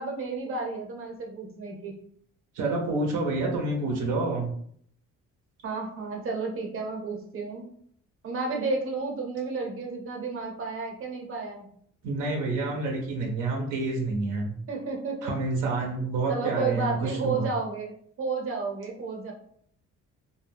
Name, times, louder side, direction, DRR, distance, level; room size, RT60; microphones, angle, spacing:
voice 1, 0.0-1.9 5.6-7.6 8.2-11.7 14.7-15.3 16.3-19.3, right 4 dB, 45° right, 1 dB, 0.8 m, -32 dB
voice 2, 2.5-4.5 12.0-14.5 15.2-17.5, right 3 dB, 85° right, 0 dB, 0.7 m, -28 dB
2.2 x 2.1 x 3.3 m, 0.63 s
cardioid pair, 90°, 30 cm